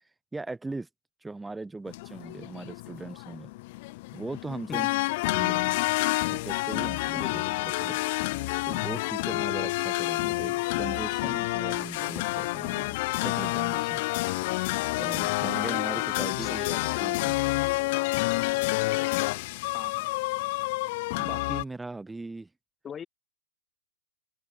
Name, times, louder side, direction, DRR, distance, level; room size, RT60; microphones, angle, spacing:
voice 1, 0.3-0.9 1.2-3.5 4.1-4.9 5.3-5.7 6.3-7.4 7.8-8.0 8.6-13.0 13.2-14.0 15.0-16.6 17.0-17.5 21.2-22.5, right 3 dB, 5° right, 1.0 m, -38 dB
sound 1, 1.9-21.6, left 22 dB, 50° left, 0.4 m, -29 dB
voice 2, 4.7-5.0 7.1-7.7 16.4-17.3 19.7-20.1 22.8-23.1, left 8 dB, 20° left, 1.4 m, -41 dB
hypercardioid pair, 135°, 0 cm